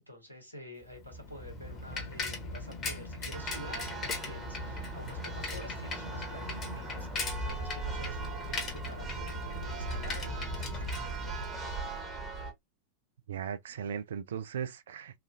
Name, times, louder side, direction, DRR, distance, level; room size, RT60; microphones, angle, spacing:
voice 1, 0.1-11.9, left 1 dB, 90° left, 1.2 m, -49 dB
Bicycle, 0.9-11.8, left 3 dB, 25° left, 1.2 m, -39 dB
Church bell, 3.3-12.5, right 3 dB, 20° right, 1.1 m, -39 dB
voice 2, 13.3-15.2, right 8 dB, 60° right, 0.3 m, -37 dB
3.0 x 2.3 x 2.4 m
figure-of-eight pair, 90°, 0 cm